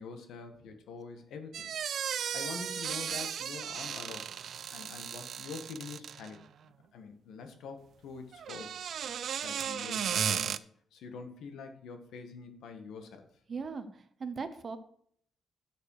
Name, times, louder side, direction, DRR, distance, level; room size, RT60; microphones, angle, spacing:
voice 1, 0.0-1.7 2.3-4.2 4.7-6.5 6.9-7.8 8.0-8.7 9.4-13.3, left 5 dB, 90° left, 6 dB, 1.7 m, -45 dB
sound 1, 1.5-6.4 8.3-10.6, right 8 dB, 55° right, 0.4 m, -35 dB
voice 2, 13.5-14.8, right 5 dB, 35° right, 10 dB, 1.0 m, -39 dB
12.0 x 6.7 x 4.9 m, 0.63 s
wide cardioid pair, 160°, 0 cm